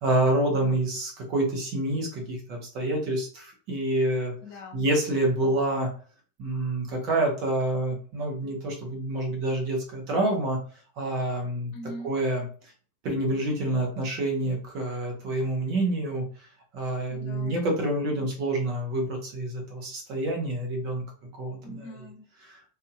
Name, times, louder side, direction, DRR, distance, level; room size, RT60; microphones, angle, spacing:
voice 1, 0.0-4.3 4.7-5.9 6.4-10.6 11.0-11.7 12.0-12.4 13.0-16.3 16.7-21.0 21.3-21.9, right 1 dB, 40° right, 1 dB, 1.2 m, -27 dB
voice 2, 4.4-4.8 11.7-12.1 17.1-17.7 21.6-22.3, left 1 dB, 50° left, 2 dB, 0.7 m, -42 dB
2.7 x 2.7 x 2.5 m, 0.41 s
figure-of-eight pair, 90°, 0 cm